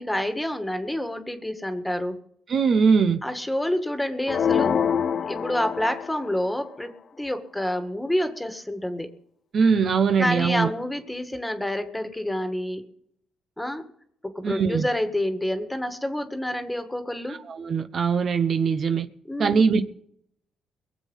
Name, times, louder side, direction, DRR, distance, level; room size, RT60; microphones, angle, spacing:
voice 1, 0.0-2.2 3.2-4.7 5.3-9.1 10.2-12.8 13.6-13.9 14.4-17.4 19.3-19.6, left 1 dB, 5° left, 1.8 m, -28 dB
voice 2, 2.5-3.2 9.5-10.7 14.4-14.9 17.3-19.1 19.4-19.8, right 5 dB, 50° right, 1.0 m, -21 dB
sound 1, 4.3-6.4, left 7 dB, 55° left, 0.7 m, -25 dB
22.0 x 7.5 x 5.5 m
cardioid pair, 90°, 0 cm